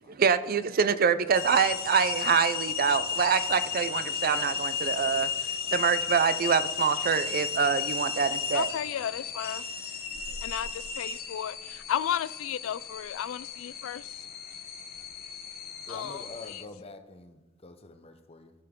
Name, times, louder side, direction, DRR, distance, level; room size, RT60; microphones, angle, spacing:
voice 1, 0.2-5.3 5.7-8.7, right 6 dB, 50° right, 0.5 m, -25 dB
sound 1, 1.3-16.6, left 7 dB, 50° left, 1.1 m, -34 dB
voice 2, 8.5-9.7 10.4-14.2 15.9-16.6, left 9 dB, 85° left, 0.3 m, -34 dB
voice 3, 15.9-18.5, left 2 dB, 30° left, 0.8 m, -46 dB
15.5 x 6.7 x 3.7 m
head